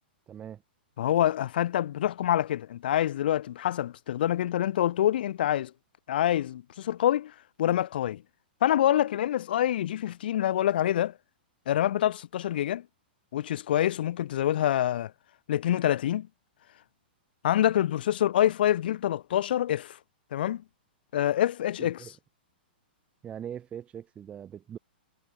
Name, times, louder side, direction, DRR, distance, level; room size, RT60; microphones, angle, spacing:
voice 1, 0.3-0.6 21.8-22.1 23.2-24.8, right 9 dB, 20° right, 5.7 m, -41 dB
voice 2, 1.0-5.7 6.1-8.2 8.6-11.1 11.7-12.8 13.3-15.1 15.5-16.3 17.4-20.0 20.3-20.6 21.1-22.0, left 12 dB, 65° left, 5.9 m, -26 dB
hypercardioid pair, 130°, 6 cm